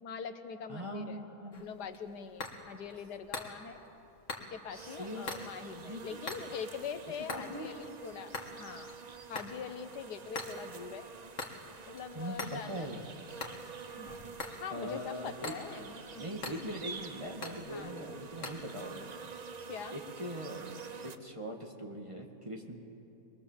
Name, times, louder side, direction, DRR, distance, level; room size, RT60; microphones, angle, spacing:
voice 1, 0.0-1.2 1.6-3.8 4.5-8.3 8.6-9.0 9.3-11.1 11.9-12.9 13.9-14.1 14.5-16.1 17.7-17.9 19.7-20.0, left 7 dB, 80° left, 10 dB, 1.6 m, -43 dB
voice 2, 0.7-1.7 4.7-5.3 5.9-6.2 7.3-7.7 12.1-13.0 14.7-15.5 16.2-19.1 19.9-22.8, equal, 20° right, 1 dB, 1.9 m, -41 dB
sound 1, 1.5-18.6, left 3 dB, 50° left, 2.2 m, -46 dB
sound 2, 4.7-21.2, right 5 dB, 45° right, 0.5 m, -48 dB
25.0 x 21.5 x 7.4 m, 3.0 s
omnidirectional pair, 1.7 m